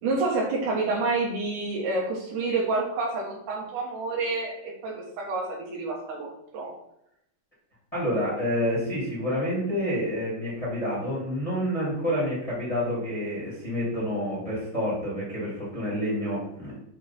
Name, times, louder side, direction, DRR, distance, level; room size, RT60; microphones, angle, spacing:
voice 1, 0.0-6.7, right 3 dB, 70° right, -2 dB, 2.6 m, -28 dB
voice 2, 7.9-16.8, equal, 15° left, -7 dB, 1.7 m, -28 dB
7.4 x 3.1 x 4.2 m, 0.78 s
omnidirectional pair, 3.9 m